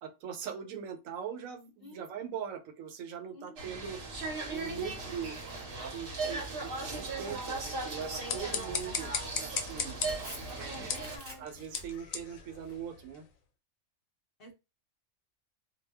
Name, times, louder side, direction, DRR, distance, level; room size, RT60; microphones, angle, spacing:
voice 1, 0.0-4.0 4.5-5.4 5.8-9.1 9.4-10.0 10.6-13.3, right 7 dB, 80° right, 7 dB, 1.0 m, -41 dB
voice 2, 3.3-3.9 10.8-11.4 14.4-14.5, left 1 dB, 50° left, 2 dB, 0.8 m, -50 dB
sound 1, 3.6-11.2, right 3 dB, 50° right, 0.8 m, -38 dB
Tearing, 4.5-12.7, equal, 15° right, 0.5 m, -53 dB
sound 2, 8.0-13.3, left 7 dB, 80° left, 1.0 m, -39 dB
2.3 x 2.1 x 3.4 m, 0.27 s
omnidirectional pair, 1.4 m